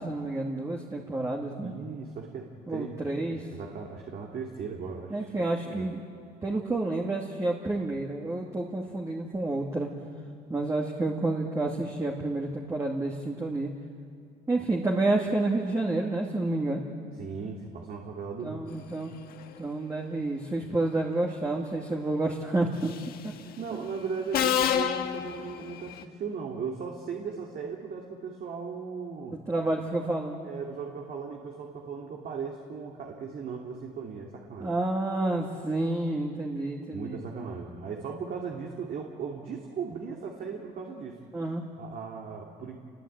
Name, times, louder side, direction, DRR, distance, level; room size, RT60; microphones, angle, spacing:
voice 1, 0.0-1.7 2.7-3.4 5.1-6.0 6.4-9.9 10.5-13.7 14.5-16.8 18.4-19.1 19.6-22.9 29.5-30.5 34.6-37.5 41.3-41.6, right 2 dB, 20° right, -1 dB, 2.4 m, -29 dB
voice 2, 1.6-6.0 17.1-18.7 23.4-29.4 30.4-34.7 36.9-41.2 41.8-42.8, right 5 dB, 60° right, 0 dB, 2.7 m, -37 dB
Subway metro underground, 22.8-23.2 24.3-26.0, left 9 dB, 65° left, 1.4 m, -28 dB
28.5 x 21.0 x 8.9 m, 2.2 s
cardioid pair, 110°, 17 cm